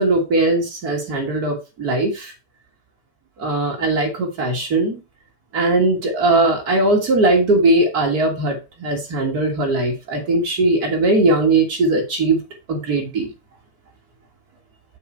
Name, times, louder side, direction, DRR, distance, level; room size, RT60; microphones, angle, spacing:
voice 1, 0.0-2.3 3.4-5.0 5.5-12.4 12.7-13.3, right 2 dB, 75° right, 1 dB, 0.8 m, -19 dB
8.2 x 5.5 x 4.4 m, 0.29 s
omnidirectional pair, 4.4 m